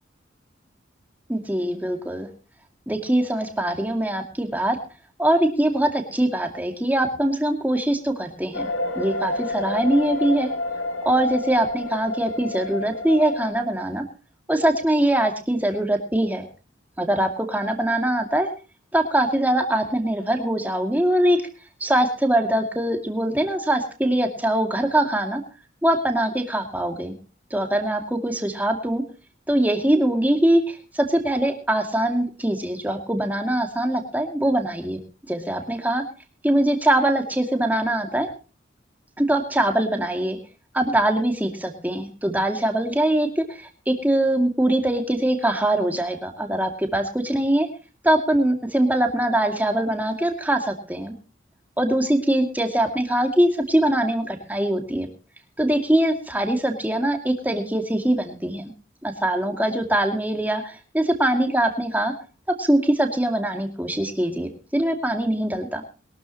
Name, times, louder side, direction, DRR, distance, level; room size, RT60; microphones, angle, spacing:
voice 1, 1.3-2.3 2.9-4.8 5.2-8.7 9.0-10.5 11.0-14.0 14.5-16.5 17.0-18.5 18.9-21.4 21.8-25.4 25.8-27.1 27.5-29.0 29.5-35.0 35.3-36.0 36.4-38.3 39.2-40.4 40.7-47.7 48.0-51.1 51.8-55.1 55.6-58.7 59.0-62.1 62.6-65.8, right 1 dB, 10° right, 4 dB, 2.2 m, -22 dB
sound 1, 8.5-13.5, left 2 dB, 85° left, 2.3 m, -29 dB
22.0 x 13.0 x 2.9 m, 0.36 s
head